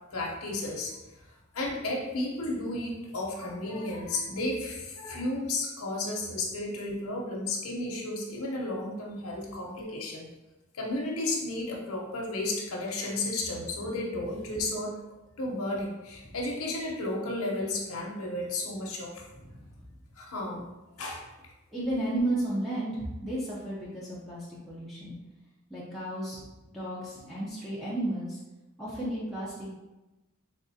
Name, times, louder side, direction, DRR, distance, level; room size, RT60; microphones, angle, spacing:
voice 1, 0.1-1.0 1.5-10.3 10.7-14.9 15.4-19.2 20.2-20.7 21.0-21.2, left 2 dB, 75° left, -2 dB, 0.9 m, -33 dB
voice 2, 19.4-19.7 21.7-25.1 25.7-26.4 26.7-28.4 28.8-29.7, right 1 dB, ahead, -9 dB, 0.7 m, -33 dB
3.7 x 3.6 x 2.7 m, 1.0 s
head